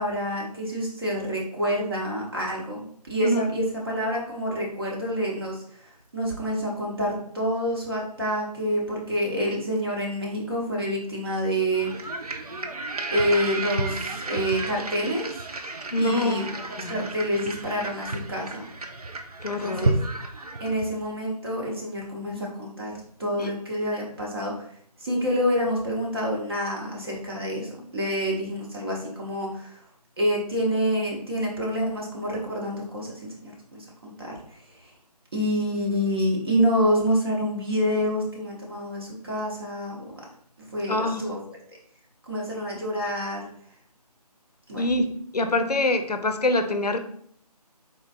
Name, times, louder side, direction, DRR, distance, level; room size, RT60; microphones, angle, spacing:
voice 1, 0.0-11.9 13.1-15.3 16.0-18.6 19.6-20.0 20.6-24.6 25.0-29.8 30.2-33.1 33.4-34.3 34.8-34.9 35.3-40.2 40.7-41.4 42.2-43.5 44.7-44.8, equal, 35° right, -3 dB, 1.0 m, -27 dB
sound 1, 11.7-21.0, right 2 dB, 65° right, 0.5 m, -32 dB
voice 2, 15.9-16.5 16.8-17.0 19.4-19.9 23.4-23.5 40.9-41.2 44.8-45.0 45.3-47.0, left 2 dB, 75° left, 7 dB, 0.5 m, -24 dB
3.9 x 3.1 x 2.5 m, 0.62 s
figure-of-eight pair, 155°, 21 cm